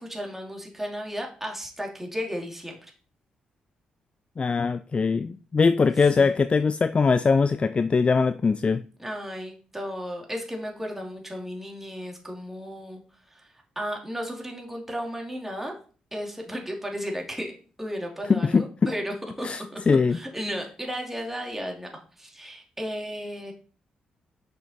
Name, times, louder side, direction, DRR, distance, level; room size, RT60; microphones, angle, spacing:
voice 1, 0.0-2.8 6.2-6.3 9.0-13.0 13.3-13.5 13.8-15.7 16.1-17.5 17.8-21.9 22.2-23.5, equal, 10° right, 2.5 m, -34 dB
voice 2, 4.4-8.8 18.3-18.9 19.4-20.2, left 4 dB, 40° left, 0.4 m, -22 dB
6.1 x 5.2 x 4.2 m
supercardioid pair, 50°, 3 cm